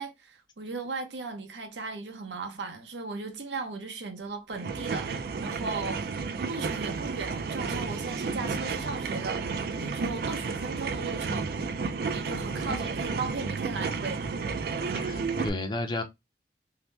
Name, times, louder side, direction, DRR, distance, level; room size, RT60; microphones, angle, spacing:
voice 1, 0.0-6.2 6.5-11.5 12.1-14.3, right 3 dB, 90° right, 0.7 m, -37 dB
sound 1, 4.5-15.5, right 4 dB, 60° right, 0.3 m, -32 dB
voice 2, 12.5-13.0 14.9-16.0, left 2 dB, 25° left, 0.5 m, -34 dB
2.7 x 2.1 x 3.1 m
head